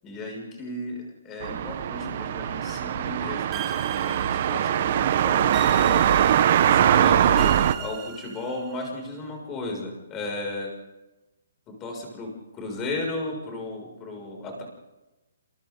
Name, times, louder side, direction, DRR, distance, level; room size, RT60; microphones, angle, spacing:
voice 1, 0.0-6.1 6.7-10.7 11.7-14.6, left 2 dB, 15° left, 1 dB, 6.7 m, -35 dB
sound 1, 1.4-7.7, right 10 dB, 35° right, 1.2 m, -22 dB
sound 2, 3.5-4.9 5.5-6.7 7.4-8.9, right 8 dB, 10° right, 1.6 m, -39 dB
29.0 x 28.0 x 4.0 m, 1.0 s
hypercardioid pair, 170°, 0 cm